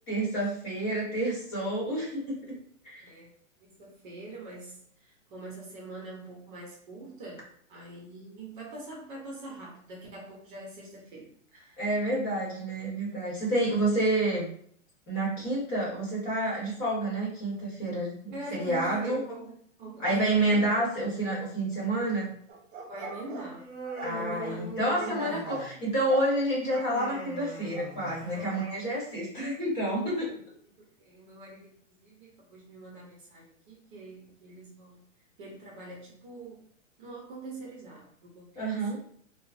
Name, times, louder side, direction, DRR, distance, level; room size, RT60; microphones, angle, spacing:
voice 1, 0.1-2.6 2.8-3.0 11.8-14.5 15.1-19.4 20.0-22.3 24.0-30.3 38.5-39.0, right 1 dB, 25° left, -5 dB, 1.0 m, -29 dB
voice 2, 3.0-3.3 3.7-11.8 18.3-20.7 22.9-23.7 24.1-24.7 25.0-25.4 28.3-28.7 30.8-31.8 32.0-35.0 35.4-36.7 37.0-38.6 38.9-39.0, right 2 dB, 40° right, -3 dB, 0.8 m, -43 dB
sound 1, 22.5-24.2 24.9-25.7 26.1-26.3 26.7-27.2 27.7-28.0 28.5-28.7, right 5 dB, 75° right, 0.8 m, -41 dB
Human voice, 23.6-25.8 26.7-28.6, right 2 dB, ahead, 0.6 m, -41 dB
3.0 x 2.0 x 2.5 m, 0.63 s
hypercardioid pair, 150°, 38 cm